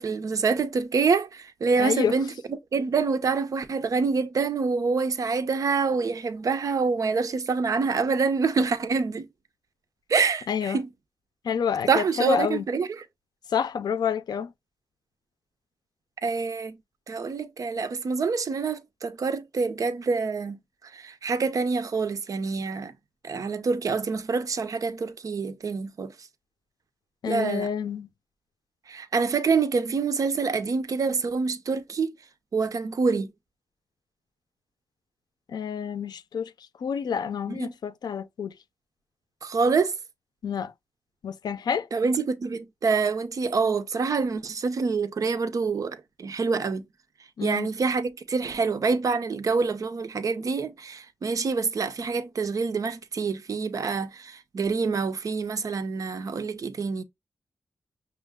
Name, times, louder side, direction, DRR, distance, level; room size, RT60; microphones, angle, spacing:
voice 1, 0.0-9.3 10.1-10.9 11.9-13.0 16.2-16.8 17.1-20.6 20.9-22.9 23.2-26.1 27.3-27.7 28.9-32.1 32.5-33.3 37.5-37.7 39.4-39.9 41.9-46.8 47.4-57.0, right 4 dB, 55° right, 0.6 m, -26 dB
voice 2, 1.8-2.1 10.5-10.8 11.4-12.6 13.5-14.5 27.2-28.1 35.5-36.5 36.8-38.5 40.4-40.7 41.2-41.9 47.4-47.7, left 7 dB, 80° left, 0.5 m, -28 dB
6.2 x 2.1 x 3.6 m
wide cardioid pair, 125°, 7 cm